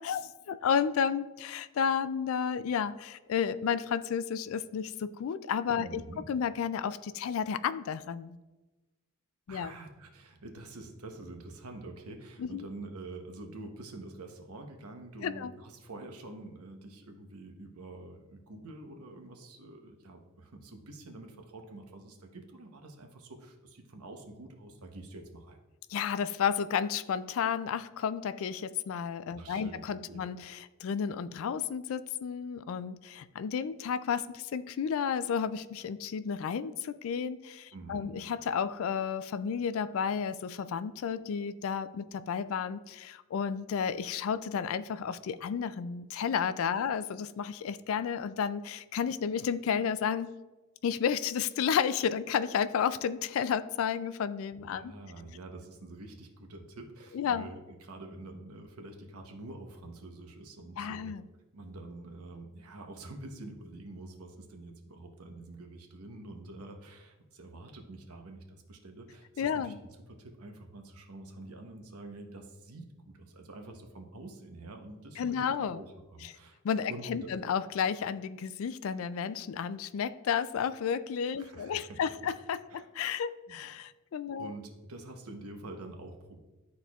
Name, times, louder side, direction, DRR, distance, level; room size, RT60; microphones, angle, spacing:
voice 1, 0.0-6.0 6.3-8.4 9.5-9.7 12.4-12.6 15.2-15.5 25.9-50.3 50.8-54.9 57.1-57.5 60.8-61.2 69.4-69.8 75.2-75.8 76.6-84.5, left 7 dB, 65° left, 15 dB, 0.3 m, -32 dB
voice 2, 5.8-6.2 9.5-25.6 29.3-30.2 37.7-38.1 54.7-61.1 61.5-69.7 70.1-76.6 76.9-77.3 81.4-82.0 82.7-82.9 83.5-83.6 84.4-86.4, right 2 dB, 85° right, 4 dB, 0.9 m, -47 dB
11.0 x 4.2 x 2.3 m, 1.1 s
head